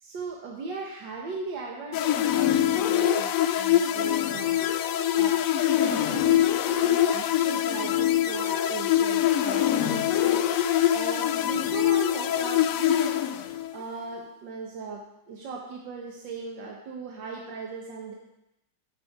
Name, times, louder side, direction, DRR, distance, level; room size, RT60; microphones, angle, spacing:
voice 1, 0.0-4.6 5.1-13.5 13.7-18.1, right 4 dB, 90° right, 0 dB, 1.8 m, -38 dB
sound 1, 1.9-13.8, left 11 dB, 75° left, 0.8 m, -24 dB
8.3 x 8.1 x 4.8 m, 0.87 s
omnidirectional pair, 1.9 m